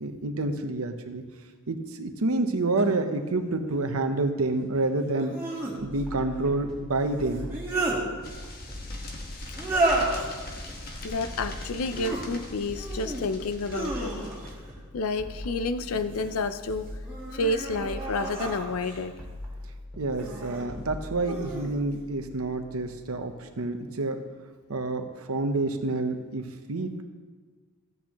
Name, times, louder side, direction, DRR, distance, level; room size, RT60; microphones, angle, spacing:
voice 1, 0.0-1.2 1.7-5.4 5.8-7.5 20.0-24.2 24.7-27.0, right 2 dB, 90° right, 7 dB, 0.9 m, -28 dB
sound 1, 2.8-2.9 5.2-5.8 7.3-8.0 9.5-10.3 11.8-12.2 12.7-13.3 13.7-14.6 15.8-16.4 17.0-19.0 20.1-20.6 21.2-21.7, right 2 dB, 10° right, 2.5 m, -31 dB
sound 2, 5.8-23.4, left 1 dB, 5° left, 2.8 m, -42 dB
sound 3, 8.2-14.5, left 1 dB, 45° left, 1.3 m, -42 dB
voice 2, 11.0-14.1 14.9-16.9 17.3-19.2, left 3 dB, 80° left, 11 dB, 0.5 m, -30 dB
15.0 x 8.4 x 3.0 m, 1.5 s
head